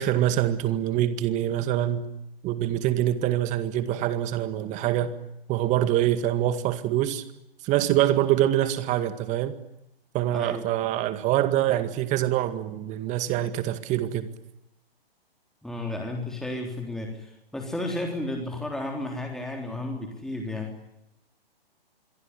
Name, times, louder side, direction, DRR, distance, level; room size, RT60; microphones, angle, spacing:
voice 1, 0.0-2.0 2.4-5.1 5.5-7.2 7.6-9.5 10.1-14.3, right 12 dB, 25° right, 12 dB, 2.0 m, -25 dB
voice 2, 10.3-10.6 15.6-20.7, left 1 dB, ahead, 1 dB, 3.7 m, -33 dB
26.0 x 23.0 x 9.9 m, 0.83 s
figure-of-eight pair, 130°, 31 cm